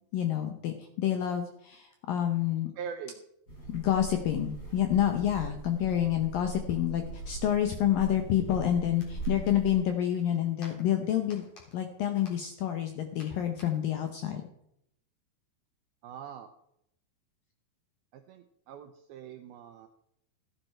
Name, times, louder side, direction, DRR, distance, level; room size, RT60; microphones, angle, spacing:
voice 1, 0.1-2.7 3.7-11.4 11.7-14.4, left 11 dB, 80° left, 6 dB, 2.0 m, -28 dB
voice 2, 2.8-3.2 16.0-16.5 18.1-19.9, right 7 dB, 85° right, 7 dB, 2.2 m, -42 dB
sound 1, 3.5-9.7, right 3 dB, 20° left, 4.0 m, -40 dB
sound 2, 8.8-14.3, left 3 dB, 40° left, 4.7 m, -58 dB
14.5 x 10.5 x 4.4 m, 0.76 s
omnidirectional pair, 5.2 m